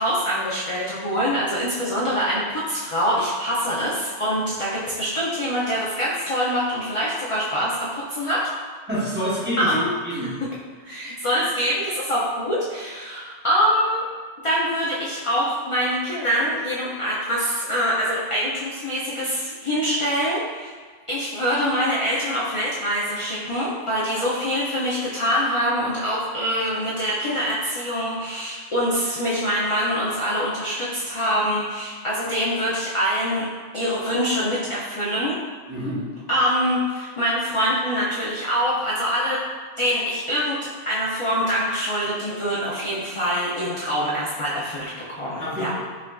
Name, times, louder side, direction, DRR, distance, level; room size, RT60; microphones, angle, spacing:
voice 1, 0.0-8.4 9.6-9.9 10.8-14.0 14.4-20.7 21.1-33.5 33.7-35.4 36.3-39.4 39.8-45.7, equal, 45° left, -7 dB, 0.4 m, -24 dB
voice 2, 8.9-9.7 10.0-10.3 35.7-36.0 45.4-45.8, equal, 10° right, -9 dB, 0.8 m, -27 dB
5.4 x 2.4 x 2.2 m, 1.5 s
omnidirectional pair, 1.1 m